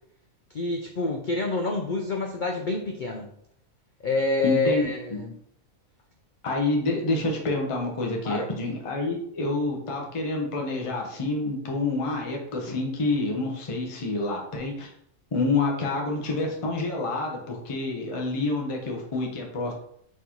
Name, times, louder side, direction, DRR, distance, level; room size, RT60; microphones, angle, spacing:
voice 1, 0.5-3.3 4.0-5.3 8.2-8.5, left 3 dB, 80° left, 2 dB, 0.4 m, -27 dB
voice 2, 4.4-5.2 6.4-14.9 15.3-19.7, left 2 dB, 30° left, 0 dB, 0.7 m, -28 dB
4.2 x 3.9 x 2.9 m, 0.69 s
omnidirectional pair, 1.4 m